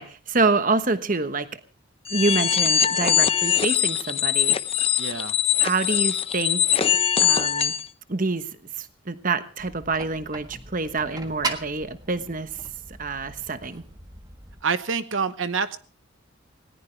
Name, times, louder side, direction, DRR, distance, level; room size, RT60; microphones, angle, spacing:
voice 1, 0.0-1.6 2.1-4.6 5.6-6.9 7.2-7.7 8.1-8.5 8.8-12.5 13.0-13.8, right 3 dB, 40° right, 11 dB, 1.1 m, -26 dB
sound 1, 2.1-7.9, left 9 dB, 30° left, 0.7 m, -22 dB
voice 2, 5.0-5.3 14.6-15.8, right 5 dB, 70° right, 12 dB, 1.0 m, -26 dB
sound 2, 9.6-14.6, right 3 dB, 20° right, 1.6 m, -38 dB
20.0 x 18.5 x 3.3 m, 0.37 s
head